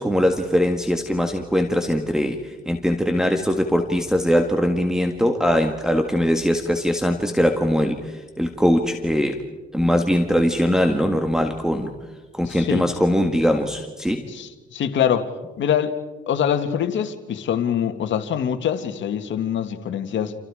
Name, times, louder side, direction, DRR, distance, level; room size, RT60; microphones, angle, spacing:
voice 1, 0.0-9.4 9.7-11.9 12.3-14.2, equal, 5° right, 1.8 m, -21 dB
voice 2, 12.4-12.9 14.3-15.3 15.6-16.0 16.3-20.3, left 9 dB, 70° left, 1.9 m, -24 dB
29.5 x 27.5 x 4.9 m
cardioid pair, 90°, 20 cm